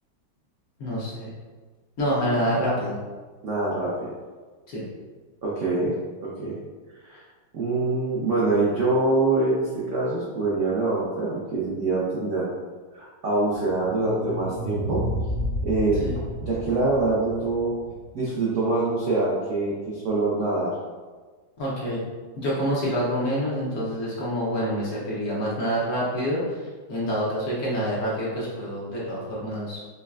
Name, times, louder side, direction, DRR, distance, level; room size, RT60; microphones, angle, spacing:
voice 1, 0.8-1.3 2.0-3.0 4.7-4.8 16.0-16.1 21.6-22.0 22.3-26.6 26.9-29.8, equal, 60° left, -6 dB, 1.1 m, -27 dB
voice 2, 3.4-4.1 5.4-5.9 6.2-6.6 7.0-7.2 7.5-12.5 12.9-15.0 15.6-16.0 16.4-17.7 18.1-20.7, right 2 dB, 85° right, -6 dB, 0.6 m, -24 dB
sound 1, 13.5-18.6, equal, 40° left, 1.9 m, -32 dB
5.3 x 2.4 x 2.3 m, 1.4 s
omnidirectional pair, 2.1 m